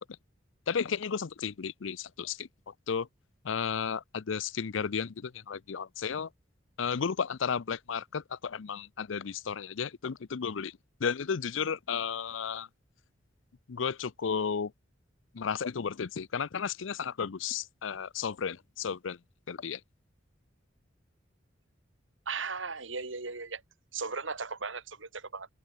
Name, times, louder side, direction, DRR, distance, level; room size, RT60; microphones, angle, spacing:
voice 1, 0.7-3.1 3.4-6.3 6.8-10.7 11.0-12.7 13.7-14.7 15.3-19.2 19.5-19.8, left 6 dB, 80° left, 0.6 m, -33 dB
voice 2, 22.3-23.6 23.9-25.5, right 4 dB, 75° right, 3.0 m, -37 dB
open air
head